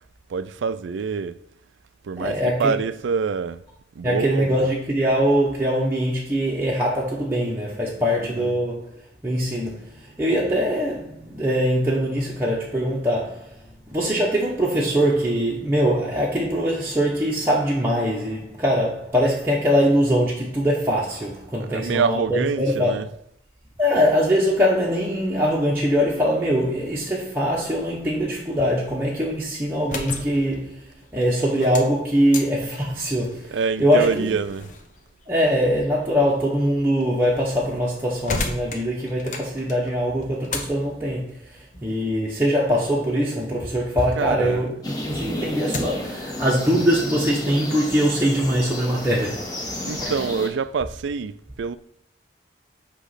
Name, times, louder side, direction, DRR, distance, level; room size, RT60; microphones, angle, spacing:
voice 1, 0.3-1.4 2.0-3.6 4.0-4.7 8.4-8.5 21.7-23.1 33.5-34.7 44.2-44.6 49.8-51.8, right 5 dB, 80° right, 0.4 m, -26 dB
voice 2, 2.2-2.7 4.0-23.0 23.8-34.3 35.3-44.7 45.0-50.2, equal, 10° right, 0.9 m, -22 dB
sound 1, 29.7-44.4 44.8-46.2, left 3 dB, 40° left, 0.9 m, -37 dB
sound 2, 44.8-50.5, left 1 dB, 20° left, 1.1 m, -32 dB
8.1 x 3.0 x 5.7 m
head